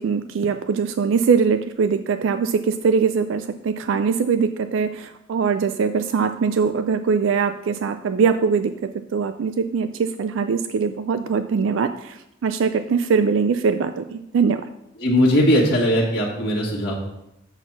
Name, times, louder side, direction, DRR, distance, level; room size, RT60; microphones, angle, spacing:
voice 1, 0.0-8.7 9.1-14.6, right 5 dB, 80° right, 9 dB, 0.4 m, -22 dB
voice 2, 15.0-16.9, equal, 55° left, -4 dB, 1.7 m, -19 dB
7.8 x 4.1 x 6.0 m, 0.86 s
head